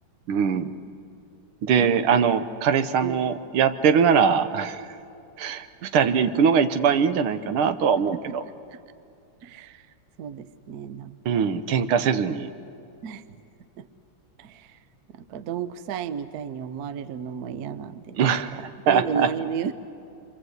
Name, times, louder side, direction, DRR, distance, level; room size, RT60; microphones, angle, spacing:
voice 1, 0.3-0.7 1.6-4.8 5.4-5.7 5.9-8.4 11.3-12.5 18.2-18.5 18.9-19.3, right 7 dB, 80° right, 10 dB, 1.8 m, -21 dB
voice 2, 8.1-8.4 8.7-8.8 9.4-9.9 10.2-11.5 13.0-13.2 13.8-13.9 14.4-14.8 15.1-18.2 18.5-19.7, right 7 dB, 60° right, 13 dB, 1.1 m, -33 dB
29.0 x 23.5 x 8.0 m, 2.5 s
omnidirectional pair, 2.3 m